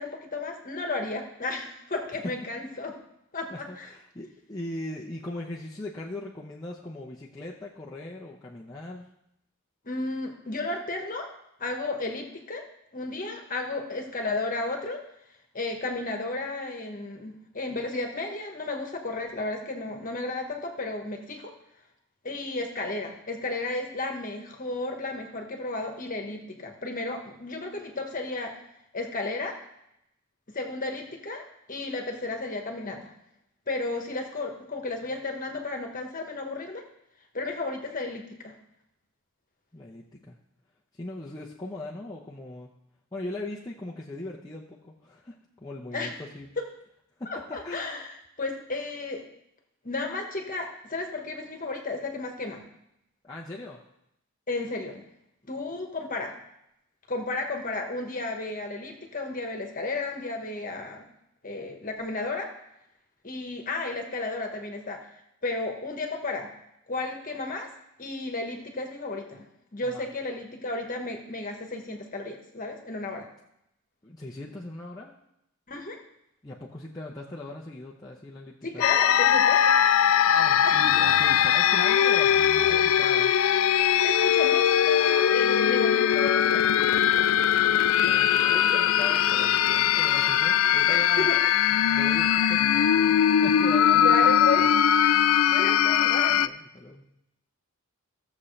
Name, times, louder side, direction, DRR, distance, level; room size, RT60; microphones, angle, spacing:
voice 1, 0.0-3.0 3.3-3.9 9.8-11.3 11.6-12.6 12.9-15.0 15.5-21.5 22.2-28.6 28.9-29.6 30.5-33.1 33.7-36.8 37.3-38.5 45.9-46.1 46.6-46.7 47.3-49.2 49.8-52.6 54.5-55.0 55.5-56.3 57.1-61.1 61.4-62.5 63.2-65.1 65.4-66.5 66.9-67.7 68.0-69.4 69.7-73.3 75.7-76.0 78.6-79.8 80.6-80.8 84.0-86.8 88.5-88.8 90.9-91.5 94.0-94.6 95.0-95.1 95.5-96.4, left 2 dB, 40° left, 3 dB, 1.4 m, -33 dB
voice 2, 3.5-9.1 39.7-40.4 41.0-42.7 43.1-46.5 47.2-48.1 53.2-53.8 69.8-70.1 74.0-75.1 76.4-78.8 80.3-83.3 87.3-91.3 91.8-94.7 96.3-97.0, left 2 dB, 15° left, -5 dB, 0.8 m, -40 dB
sound 1, 78.8-96.5, left 9 dB, 65° left, 0.3 m, -21 dB
sound 2, 80.7-81.8 82.1-83.1, right 3 dB, 85° right, 1.4 m, -42 dB
16.0 x 7.1 x 3.3 m, 0.81 s
head